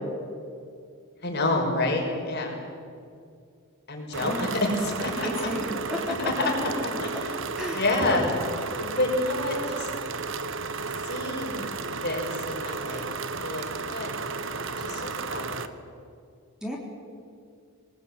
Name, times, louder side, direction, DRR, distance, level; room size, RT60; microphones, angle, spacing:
voice 1, 1.2-2.5 3.9-5.3 6.4-6.5 7.0-7.4 7.7-8.3 8.8-9.9 11.0-11.7 12.0-13.1 13.4-14.1 14.6-15.5, left 2 dB, 50° left, 0 dB, 5.7 m, -28 dB
sound 1, 4.1-15.7, right 4 dB, 60° right, 1.3 m, -33 dB
voice 2, 4.2-4.5 5.2-6.0 7.6-8.3 16.6-16.8, equal, 5° right, -2 dB, 3.8 m, -32 dB
24.0 x 20.0 x 9.2 m, 2.3 s
head